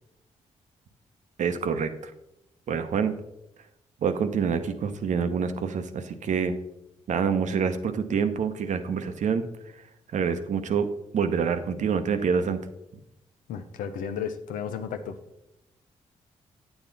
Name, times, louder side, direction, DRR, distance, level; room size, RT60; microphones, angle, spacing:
voice 1, 1.4-2.1 2.7-3.1 4.0-6.5 7.1-9.5 10.1-12.6, right 6 dB, 65° right, 9 dB, 0.8 m, -26 dB
voice 2, 13.5-15.2, left 7 dB, 85° left, 9 dB, 0.7 m, -33 dB
8.9 x 7.1 x 4.0 m, 0.86 s
supercardioid pair, 55°, 13 cm